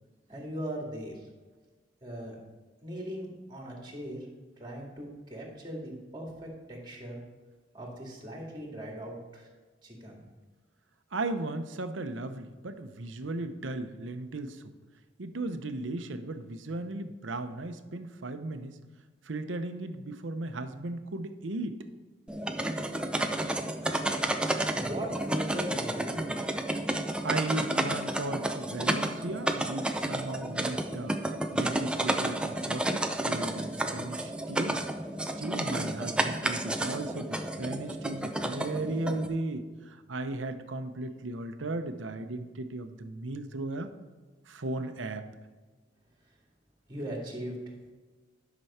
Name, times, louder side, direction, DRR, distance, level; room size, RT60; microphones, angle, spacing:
voice 1, 0.3-1.3 2.0-2.4 2.8-4.3 4.6-7.2 7.7-9.5 9.8-10.2 24.7-26.5 46.9-47.7, equal, 25° right, -1 dB, 2.2 m, -39 dB
voice 2, 11.1-14.7 15.2-18.8 19.2-21.8 27.2-31.2 31.5-34.8 35.2-43.9 44.5-45.3, right 2 dB, 75° right, 8 dB, 0.8 m, -36 dB
sound 1, 22.3-39.3, right 1 dB, 5° right, 0.5 m, -31 dB
11.0 x 6.1 x 4.3 m, 1.3 s
head